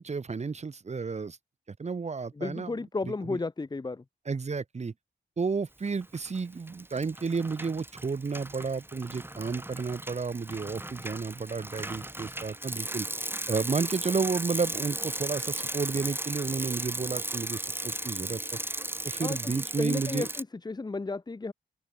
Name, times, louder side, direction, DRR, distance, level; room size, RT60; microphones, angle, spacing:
voice 1, 0.0-1.4 1.8-2.7 3.2-3.4 4.3-4.9 5.4-13.1 13.5-18.6 19.0-20.3, right 4 dB, 35° right, 0.8 m, -32 dB
voice 2, 2.4-4.0 19.2-21.5, left 3 dB, 20° left, 0.6 m, -33 dB
Bicycle, 6.0-6.4 6.7-20.4, right 1 dB, 10° right, 1.5 m, -36 dB
open air
cardioid pair, 60°, 18 cm